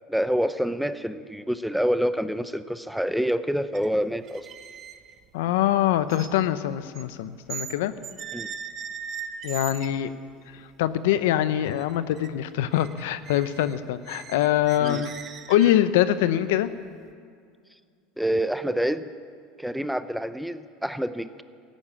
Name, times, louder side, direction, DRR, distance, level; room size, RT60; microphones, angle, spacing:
voice 1, 0.1-4.5 8.3-8.5 14.8-15.0 18.2-19.1 19.6-21.4, equal, ahead, 12 dB, 0.6 m, -27 dB
sound 1, 3.7-3.9 4.2-7.8 8.0-10.0 10.5-10.6 11.0-11.4 11.7-12.3 12.6-16.0, right 7 dB, 40° right, 1.0 m, -40 dB
voice 2, 5.3-7.9 9.4-10.1 10.8-15.1 15.5-16.7, left 12 dB, 80° left, 13 dB, 0.7 m, -23 dB
14.5 x 10.5 x 8.5 m, 2.2 s
supercardioid pair, 105°, 0 cm